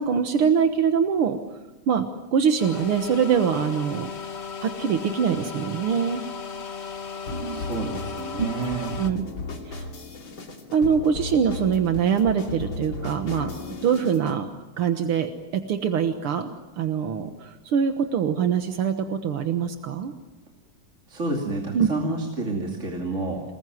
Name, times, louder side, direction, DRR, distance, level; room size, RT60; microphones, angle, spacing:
voice 1, 0.0-1.4 1.9-2.0 2.3-4.1 4.6-6.2 7.3-7.6 8.4-8.5 9.0-9.3 9.7-9.8 10.7-13.5 13.8-14.5 14.8-20.1 21.7-21.9, right 7 dB, 80° right, 7 dB, 2.2 m, -23 dB
sound 1, 2.6-9.1, left 6 dB, 35° left, 1.3 m, -36 dB
sound 2, 7.3-14.4, left 3 dB, 60° left, 3.4 m, -36 dB
voice 2, 7.3-8.9 21.1-23.4, right 3 dB, 35° right, 0 dB, 3.0 m, -29 dB
27.5 x 20.5 x 9.4 m, 1.1 s
omnidirectional pair, 2.4 m